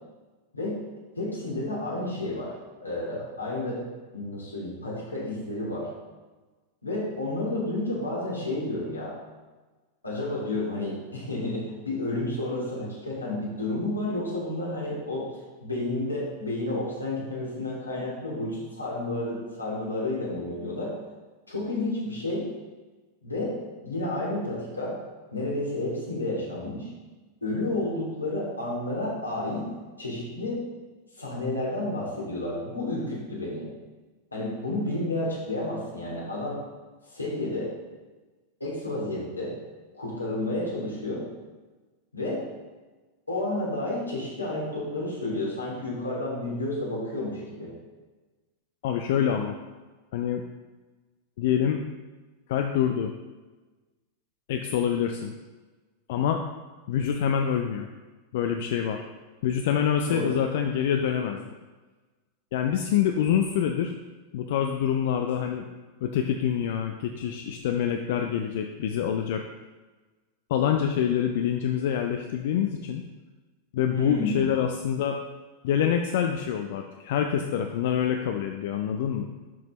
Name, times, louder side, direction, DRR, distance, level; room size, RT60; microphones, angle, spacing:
voice 1, 1.2-2.5 2.8-3.9 4.1-5.9 6.8-9.2 10.0-15.3 15.6-21.0 21.5-22.5 23.2-23.5 23.8-25.0 25.3-26.9 27.4-29.7 30.0-30.6 31.1-33.7 34.3-36.6 37.0-37.7 38.6-39.6 39.9-41.2 42.1-42.4 43.3-47.7 60.1-60.4 73.9-74.6, left 2 dB, 80° left, -5 dB, 2.7 m, -31 dB
voice 2, 48.8-49.6 50.1-50.4 51.4-51.8 52.5-53.1 54.5-55.3 56.1-56.4 56.9-57.9 58.3-59.0 59.4-61.5 62.5-63.9 64.3-65.7 66.0-69.4 70.5-73.0 73.7-75.2 75.6-79.3, left 9 dB, 55° left, 5 dB, 0.5 m, -26 dB
10.5 x 6.0 x 3.1 m, 1.3 s
figure-of-eight pair, 90°, 0 cm